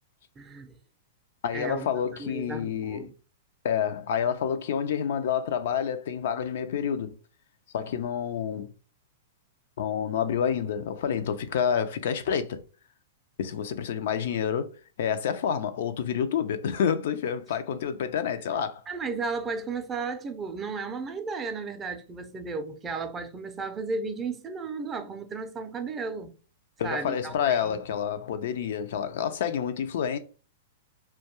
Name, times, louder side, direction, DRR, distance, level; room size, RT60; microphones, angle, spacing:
voice 1, 0.4-0.7 1.5-1.9 2.2-3.1 18.9-26.3 26.8-27.8, right 4 dB, 20° right, 0.4 m, -34 dB
voice 2, 1.4-3.1 3.6-7.1 7.7-8.7 9.8-12.6 13.4-14.7 15.0-18.8 26.8-30.2, left 8 dB, 70° left, 0.3 m, -28 dB
2.2 x 2.2 x 2.9 m
hypercardioid pair, 130°, 0 cm